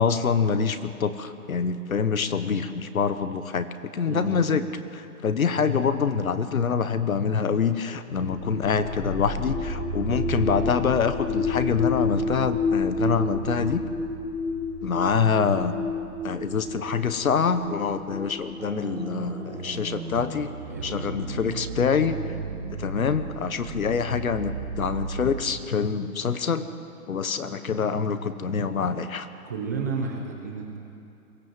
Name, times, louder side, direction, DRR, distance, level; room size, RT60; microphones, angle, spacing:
voice 1, 0.0-3.7 3.9-4.6 4.9-13.8 14.8-15.7 16.2-20.5 20.8-22.2 22.8-26.6 27.1-29.3, left 6 dB, 65° left, 11 dB, 1.4 m, -25 dB
voice 2, 4.1-4.4 20.7-21.2 29.5-30.8, right 4 dB, 10° right, 0 dB, 0.7 m, -32 dB
sound 1, 8.2-20.0, left 2 dB, 15° left, 2.3 m, -30 dB
sound 2, 18.6-25.6, right 4 dB, 45° right, 3.3 m, -35 dB
22.5 x 15.0 x 7.7 m, 2.6 s
hypercardioid pair, 155°, 45 cm